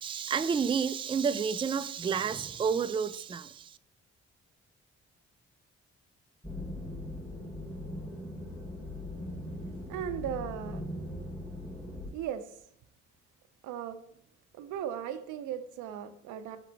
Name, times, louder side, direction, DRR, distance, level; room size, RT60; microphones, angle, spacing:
voice 1, 0.0-3.8, right 6 dB, 20° right, 12 dB, 0.3 m, -30 dB
sound 1, 6.4-12.1, left 1 dB, 5° left, 1.6 m, -40 dB
voice 2, 9.9-10.8 12.1-12.6 13.6-14.0 14.5-16.6, right 10 dB, 85° right, 10 dB, 0.6 m, -37 dB
5.9 x 4.6 x 3.8 m, 0.68 s
supercardioid pair, 50°, 30 cm